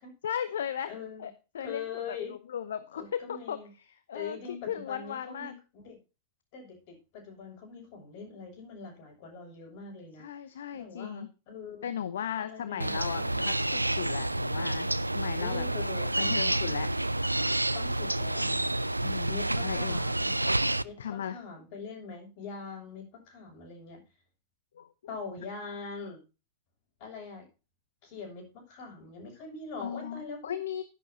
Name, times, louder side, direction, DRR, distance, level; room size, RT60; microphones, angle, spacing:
voice 1, 0.2-0.9 1.2-3.6 4.1-4.4 4.7-5.5 10.2-11.3 11.8-15.6 16.2-16.9 19.0-20.0 21.0-21.4 24.8-24.9 29.8-30.8, left 9 dB, 65° left, 13 dB, 0.8 m, -36 dB
voice 2, 0.9-1.3 1.6-2.3 2.9-3.7 4.1-6.0 6.5-10.3 10.7-13.6 15.4-16.7 17.7-18.7 19.3-20.3 20.8-24.0 25.1-26.2 27.0-27.5 28.0-30.5, left 5 dB, 45° left, 2 dB, 6.7 m, -43 dB
sound 1, 12.8-20.8, right 1 dB, 85° right, 0.4 m, -29 dB
11.5 x 11.0 x 2.7 m, 0.31 s
figure-of-eight pair, 90°, 0 cm